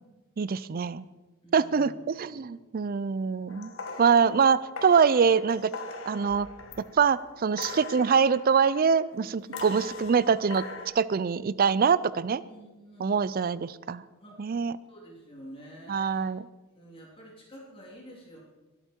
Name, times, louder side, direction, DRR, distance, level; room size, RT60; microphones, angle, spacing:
voice 1, 0.4-1.1 1.5-3.7 4.0-5.7 6.1-6.5 6.8-10.6 10.9-12.4 13.0-14.0 14.4-14.8 15.9-16.5, right 6 dB, 45° right, 18 dB, 0.4 m, -24 dB
voice 2, 1.4-2.5 9.4-10.0 12.4-13.4 14.2-14.5 14.9-16.3 16.7-18.4, equal, 25° left, -3 dB, 3.0 m, -49 dB
sound 1, 3.5-7.2 7.6-9.0 9.5-10.9, left 4 dB, 70° left, 1.3 m, -41 dB
23.0 x 8.2 x 4.4 m, 1.2 s
head